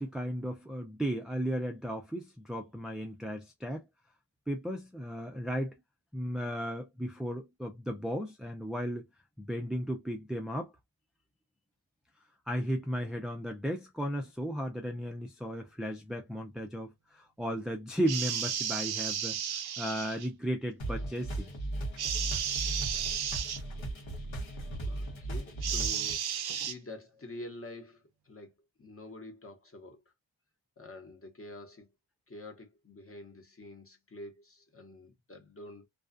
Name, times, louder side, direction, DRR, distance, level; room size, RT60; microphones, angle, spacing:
voice 1, 0.0-3.8 4.5-5.8 6.1-9.1 9.4-10.7 12.5-21.5, equal, ahead, 0.3 m, -35 dB
sound 1, 18.1-20.3 22.0-23.6 25.6-26.7, right 8 dB, 55° right, 0.5 m, -33 dB
sound 2, 20.8-26.2, right 1 dB, 80° left, 1.1 m, -37 dB
voice 2, 24.8-28.5 28.8-30.0 30.8-31.9 32.3-35.9, left 1 dB, 30° left, 0.9 m, -47 dB
2.4 x 2.3 x 2.4 m
wide cardioid pair, 65°, 46 cm